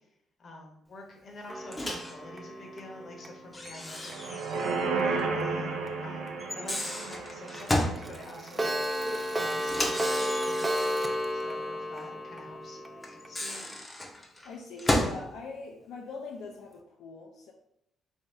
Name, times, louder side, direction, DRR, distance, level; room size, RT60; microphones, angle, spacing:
voice 1, 0.4-4.5 5.0-5.7 6.0-8.8 9.4-10.2 10.4-10.8 11.3-13.7, left 2 dB, 50° left, 1 dB, 0.9 m, -47 dB
Clock, 1.5-4.5 5.0-5.1 5.4-5.5 5.9-6.0 6.3-6.4 6.7-6.8 7.1-7.2 7.5-7.6 8.0-13.8, equal, 20° right, 0.4 m, -33 dB
Microwave oven, 1.7-2.2 3.5-4.9 5.2-5.3 6.4-8.0 9.6-11.1 13.0-15.2, left 1 dB, 20° left, 0.6 m, -32 dB
sound 1, 4.0-9.3 9.7-9.8, right 4 dB, 85° right, 0.5 m, -33 dB
voice 2, 14.4-17.5, left 4 dB, 85° left, 0 dB, 0.4 m, -42 dB
3.1 x 2.7 x 3.4 m, 0.79 s
cardioid pair, 90°, 0 cm